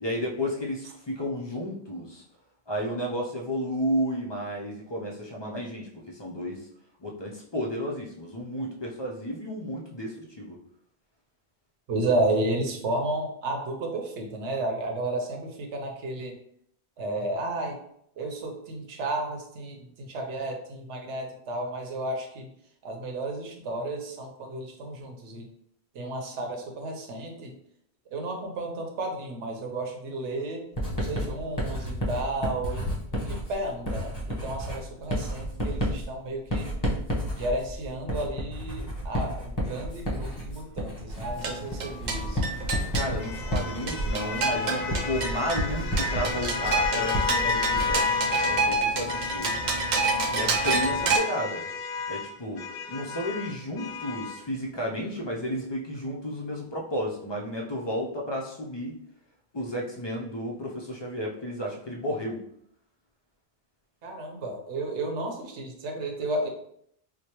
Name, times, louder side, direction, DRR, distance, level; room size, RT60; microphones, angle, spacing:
voice 1, 0.0-2.2 2.7-6.7 7.0-10.6 42.9-49.5 50.3-51.7 52.1-58.9 59.5-62.4, equal, 40° left, -1 dB, 0.3 m, -32 dB
voice 2, 11.9-16.3 17.0-17.8 18.2-22.5 22.8-25.5 25.9-27.5 28.1-30.7 30.9-36.7 37.3-42.4 51.0-51.1 64.0-66.5, right 2 dB, 85° right, 2 dB, 1.0 m, -32 dB
Writing, 30.8-48.1, equal, 20° left, 0.8 m, -31 dB
sound 1, 41.2-51.2, right 3 dB, 55° right, 0.5 m, -29 dB
sound 2, 42.1-48.8 49.1-54.4, left 5 dB, 65° left, 0.7 m, -32 dB
4.7 x 2.1 x 2.9 m, 0.71 s
omnidirectional pair, 1.1 m